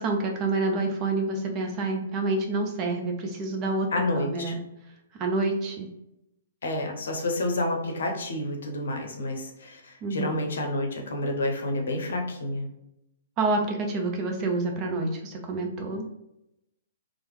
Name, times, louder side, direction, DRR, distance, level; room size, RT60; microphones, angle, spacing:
voice 1, 0.0-3.9 4.1-4.6 5.1-5.9 10.0-10.3 13.4-16.0, right 3 dB, 30° right, 2 dB, 0.5 m, -28 dB
voice 2, 3.9-4.5 6.6-12.7, left 1 dB, 60° left, 2 dB, 0.7 m, -29 dB
3.1 x 2.1 x 3.1 m, 0.86 s
figure-of-eight pair, 120°, 0 cm